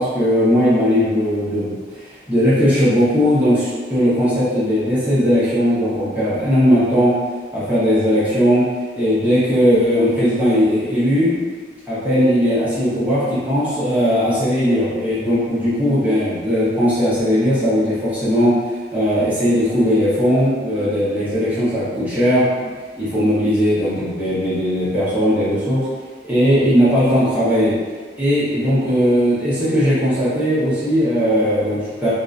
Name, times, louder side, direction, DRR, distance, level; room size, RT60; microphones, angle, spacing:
voice 1, 0.0-7.2 7.5-8.7 9.0-11.3 11.9-18.6 18.9-22.7 23.0-25.8 26.2-27.7 28.2-32.1, equal, 10° right, -12 dB, 0.7 m, -18 dB
2.4 x 2.1 x 2.4 m, 1.5 s
head